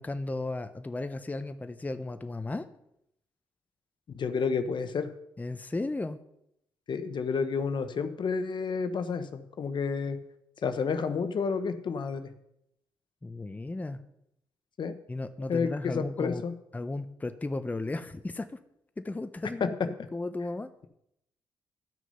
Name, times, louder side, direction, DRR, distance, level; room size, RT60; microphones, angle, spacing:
voice 1, 0.0-2.7 5.4-6.2 13.2-14.0 15.1-16.5 16.7-18.5 19.0-20.7, left 2 dB, 15° left, 10 dB, 0.6 m, -35 dB
voice 2, 4.1-5.1 6.9-10.2 10.6-12.3 14.8-15.0 15.5-16.5 19.6-19.7, left 5 dB, 60° left, 10 dB, 0.9 m, -30 dB
12.0 x 6.3 x 5.5 m, 0.80 s
cardioid pair, 65°, 9 cm